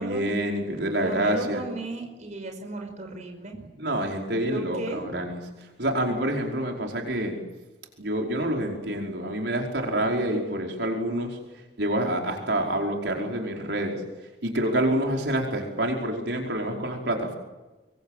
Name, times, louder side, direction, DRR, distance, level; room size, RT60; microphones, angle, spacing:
voice 1, 0.0-1.6 3.8-5.4 5.8-7.4 8.0-11.4 11.8-14.0 14.4-17.3, right 1 dB, 75° right, 1 dB, 5.1 m, -27 dB
voice 2, 1.0-3.7 4.5-5.2, right 2 dB, 45° right, 3 dB, 5.4 m, -35 dB
25.5 x 24.0 x 7.7 m, 1.1 s
head